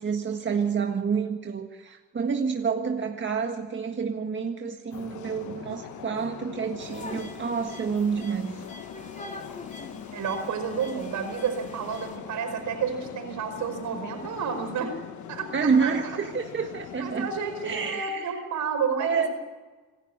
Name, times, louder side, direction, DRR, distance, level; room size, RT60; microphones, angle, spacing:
voice 1, 0.0-8.6 15.5-17.3 17.6-18.4 19.0-19.3, right 6 dB, 40° right, 3 dB, 1.8 m, -28 dB
sound 1, 4.9-17.9, left 10 dB, 75° left, 1.2 m, -42 dB
sound 2, 6.8-12.2, left 2 dB, 25° left, 3.7 m, -44 dB
voice 2, 10.1-14.9 15.3-15.9 17.0-19.3, right 6 dB, 75° right, 5 dB, 5.2 m, -30 dB
26.5 x 12.5 x 8.7 m, 1.3 s
cardioid pair, 90°, 30 cm